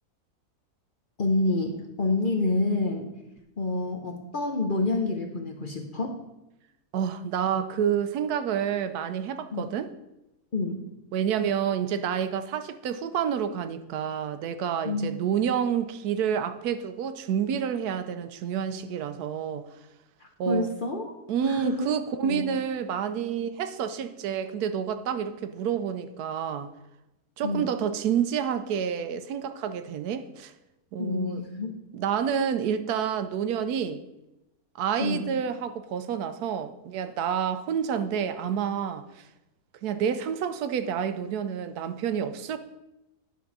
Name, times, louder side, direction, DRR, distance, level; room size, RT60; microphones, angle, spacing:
voice 1, 1.2-3.1 3.6-6.2 9.5-9.7 10.5-10.9 14.8-15.2 20.2-21.1 21.4-21.9 22.2-22.5 27.4-27.7 31.0-31.8 35.0-35.3, left 2 dB, 45° left, 0.8 m, -28 dB
voice 2, 6.9-9.9 11.1-19.7 20.4-20.7 21.3-26.7 27.4-30.5 30.9-31.4 31.9-34.0 34.8-39.3 39.8-42.6, right 8 dB, 85° right, 1.1 m, -29 dB
10.5 x 3.7 x 6.0 m
omnidirectional pair, 1.6 m